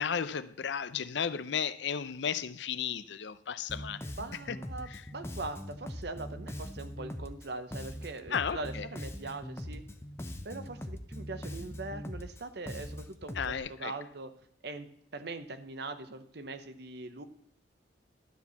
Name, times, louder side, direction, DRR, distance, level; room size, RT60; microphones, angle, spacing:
voice 1, 0.0-4.0 4.5-4.6 4.9-5.0 8.3-8.9 13.4-13.9, left 7 dB, 70° left, 0.5 m, -34 dB
Bass guitar, 3.7-13.6, equal, 15° left, 0.7 m, -42 dB
voice 2, 4.2-9.8 10.4-14.3 14.6-17.2, right 3 dB, 60° right, 0.9 m, -41 dB
12.5 x 4.6 x 6.9 m
head